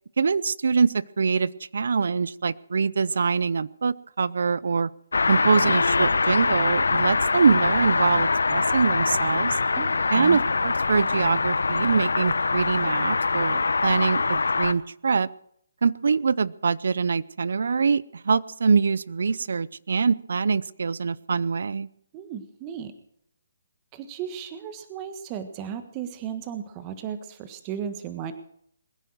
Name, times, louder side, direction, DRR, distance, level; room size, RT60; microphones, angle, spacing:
voice 1, 0.2-4.9 5.3-9.6 10.1-15.3 15.8-21.9, right 5 dB, 70° right, 21 dB, 0.6 m, -24 dB
sound 1, 5.1-14.7, left 4 dB, 85° left, 0.8 m, -23 dB
voice 2, 9.8-10.4 22.1-22.9 23.9-28.3, right 8 dB, 25° right, 9 dB, 1.5 m, -35 dB
21.0 x 10.5 x 6.4 m, 0.68 s
hypercardioid pair, 155°, 0 cm